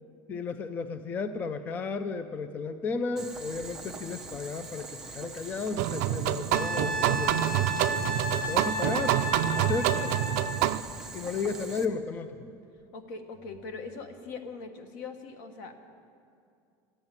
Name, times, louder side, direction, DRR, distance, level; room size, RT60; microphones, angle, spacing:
voice 1, 0.3-7.7 8.3-9.2 9.5-10.1 11.1-12.6, left 4 dB, 15° left, 11 dB, 0.3 m, -34 dB
Boiling, 3.2-11.8, right 3 dB, 5° right, 0.7 m, -43 dB
sound 1, 5.8-10.8, right 15 dB, 60° right, 0.4 m, -27 dB
Wind instrument woodwind instrument, 6.5-10.8 13.4-13.6, left 1 dB, 40° left, 1.1 m, -33 dB
voice 2, 12.9-15.9, left 4 dB, 70° left, 8 dB, 1.3 m, -41 dB
13.5 x 8.8 x 9.5 m, 2.4 s
cardioid pair, 180°, 10 cm